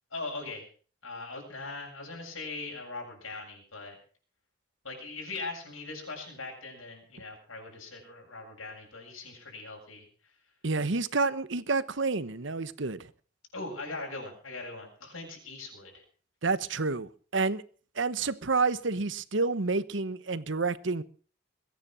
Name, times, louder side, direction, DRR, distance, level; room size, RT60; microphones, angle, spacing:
voice 1, 0.1-0.7 1.0-4.0 4.8-10.1 13.5-16.0, left 3 dB, 85° left, 7.4 m, -40 dB
voice 2, 10.6-13.1 16.4-17.6 17.9-21.0, right 4 dB, 65° right, 1.0 m, -29 dB
22.5 x 9.7 x 6.2 m
head